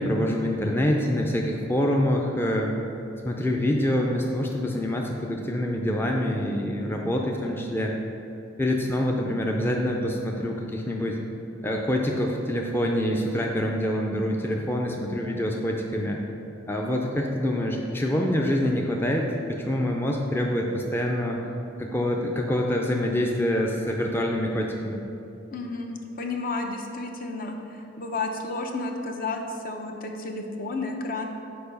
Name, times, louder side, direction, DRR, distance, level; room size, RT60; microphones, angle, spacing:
voice 1, 0.0-2.7 3.2-8.0 8.6-11.2 11.6-16.2 16.7-21.4 21.8-25.0, left 1 dB, 10° left, 0 dB, 0.5 m, -26 dB
voice 2, 25.5-31.2, left 3 dB, 50° left, 3 dB, 0.7 m, -32 dB
6.7 x 4.9 x 5.3 m, 2.8 s
head